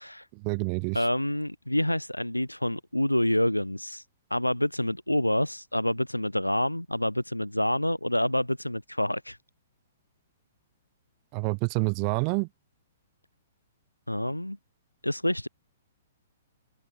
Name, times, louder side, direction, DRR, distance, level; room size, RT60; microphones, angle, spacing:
voice 1, 0.3-1.0 11.3-12.5, right 40 dB or more, 35° right, 1.6 m, -28 dB
voice 2, 0.9-4.0 4.3-9.4 14.1-14.6 15.0-15.5, left 1 dB, 90° left, 0.5 m, -27 dB
open air
figure-of-eight pair, 115°, 0 cm